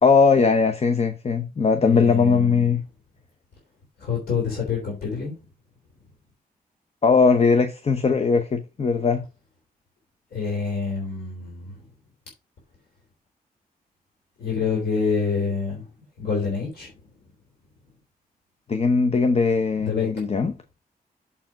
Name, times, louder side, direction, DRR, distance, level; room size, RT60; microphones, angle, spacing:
voice 1, 0.0-2.8 7.0-9.2 18.7-20.5, left 5 dB, 40° left, 0.8 m, -19 dB
voice 2, 1.8-2.8 4.0-5.4 10.3-11.8 14.4-15.9 16.2-16.9 19.8-20.1, left 5 dB, 85° left, 3.4 m, -27 dB
7.3 x 4.4 x 5.7 m
cardioid pair, 80°, 16 cm